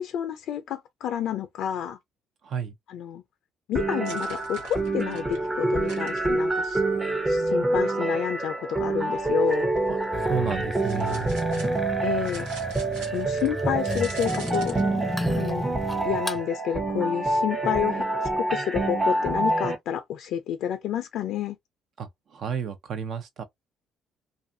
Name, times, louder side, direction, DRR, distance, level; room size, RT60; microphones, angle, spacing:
voice 1, 0.0-2.0 2.9-3.2 3.7-6.8 7.3-9.7 12.0-12.5 13.1-14.8 15.3-15.6 16.0-18.0 18.4-21.6, left 10 dB, 75° left, 0.3 m, -29 dB
voice 2, 2.4-2.7 9.9-11.7 22.0-23.4, right 7 dB, 60° right, 0.7 m, -32 dB
sound 1, 3.7-19.7, right 2 dB, 25° right, 0.8 m, -27 dB
sound 2, 4.1-7.5 9.1-15.2, right 3 dB, 90° right, 1.1 m, -47 dB
sound 3, 10.1-16.4, left 1 dB, 10° left, 0.6 m, -34 dB
2.5 x 2.4 x 2.5 m
supercardioid pair, 70°, 0 cm